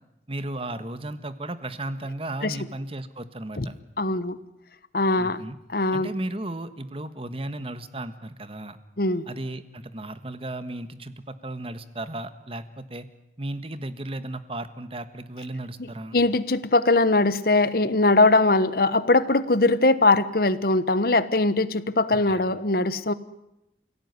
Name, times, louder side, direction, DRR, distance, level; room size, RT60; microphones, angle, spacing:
voice 1, 0.3-3.7 5.2-5.6 5.9-8.8 9.3-13.0 13.4-16.2 22.3-22.5, right 1 dB, 30° right, 11 dB, 1.5 m, -35 dB
voice 2, 4.0-4.4 4.9-5.4 5.7-6.1 9.0-9.3 15.8-23.1, left 2 dB, 55° left, 15 dB, 1.2 m, -21 dB
28.0 x 17.0 x 9.7 m, 0.87 s
head